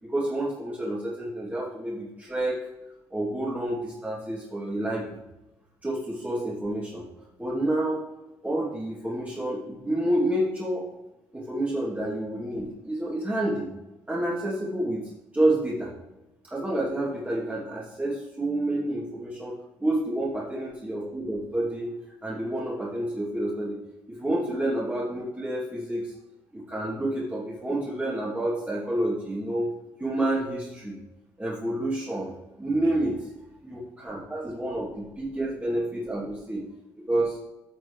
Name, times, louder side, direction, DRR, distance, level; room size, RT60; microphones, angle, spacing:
voice 1, 0.0-2.7 3.1-5.2 5.8-7.1 7.4-8.0 8.4-10.9 11.3-13.7 14.1-15.9 16.4-23.8 24.1-26.1 26.5-29.7 30.0-31.0 31.4-33.2 33.6-36.7 37.1-37.4, right 1 dB, 15° right, -6 dB, 2.7 m, -29 dB
12.5 x 6.1 x 3.2 m, 0.98 s
hypercardioid pair, 50°, 10 cm